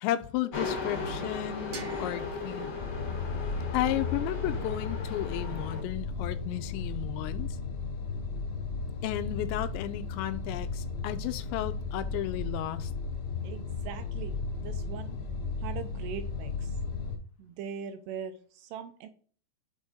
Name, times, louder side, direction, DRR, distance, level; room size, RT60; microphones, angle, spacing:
voice 1, 0.0-2.7 3.7-7.5 9.0-12.9, left 14 dB, 85° left, 2.9 m, -33 dB
sound 1, 0.5-5.8, left 3 dB, 50° left, 1.5 m, -36 dB
sound 2, 1.7-4.6, right 4 dB, 65° right, 2.1 m, -50 dB
sound 3, 2.8-17.2, left 4 dB, 70° left, 2.7 m, -35 dB
voice 2, 13.4-15.2 15.6-16.8 17.4-19.1, right 7 dB, 80° right, 2.6 m, -41 dB
7.0 x 3.8 x 4.1 m
omnidirectional pair, 5.1 m